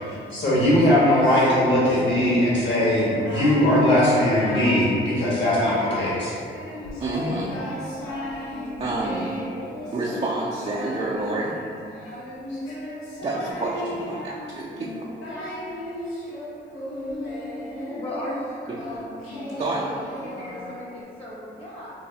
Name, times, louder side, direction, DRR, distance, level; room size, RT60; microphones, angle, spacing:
voice 1, 0.3-6.3, left 1 dB, 60° left, -8 dB, 1.4 m, -20 dB
Singing, 1.0-2.5 2.9-3.7 4.1-4.9 5.2-6.1 6.5-21.0, left 1 dB, 80° left, 0.7 m, -35 dB
voice 2, 7.0-7.5 8.8-9.3 9.9-11.6 13.2-14.9 15.4-15.6 18.7-18.8 19.6-19.9, right 2 dB, 30° right, -5 dB, 0.4 m, -28 dB
voice 3, 18.0-18.3 18.6-18.7 20.2-21.9, left 1 dB, 25° left, -7 dB, 0.9 m, -37 dB
3.9 x 2.0 x 2.7 m, 2.5 s
supercardioid pair, 55°, 21 cm